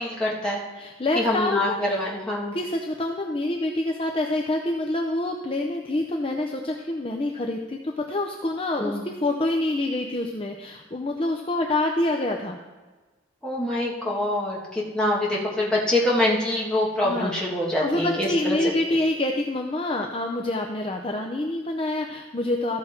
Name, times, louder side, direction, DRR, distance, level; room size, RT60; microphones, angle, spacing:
voice 1, 0.0-0.6 1.2-2.6 8.8-9.0 13.4-18.6, left 1 dB, 5° left, -5 dB, 1.7 m, -25 dB
voice 2, 0.7-2.1 2.5-12.6 17.0-22.8, left 1 dB, 30° left, 2 dB, 0.6 m, -27 dB
14.0 x 6.1 x 4.4 m, 1.3 s
head